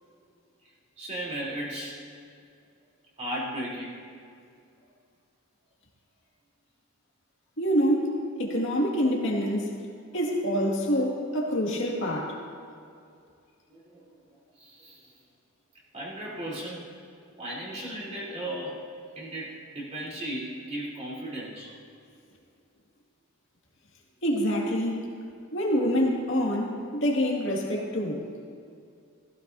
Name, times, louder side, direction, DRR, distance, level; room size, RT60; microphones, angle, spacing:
voice 1, 1.0-2.0 3.2-4.0 13.7-14.1 14.6-15.1 15.9-16.9 17.4-18.8 19.1-21.7, right 1 dB, 30° right, -7 dB, 3.4 m, -36 dB
voice 2, 7.6-9.7 10.1-12.4 24.2-25.0 25.5-26.7 27.0-28.2, equal, 55° left, -3 dB, 2.2 m, -26 dB
16.0 x 15.5 x 2.7 m, 2.4 s
head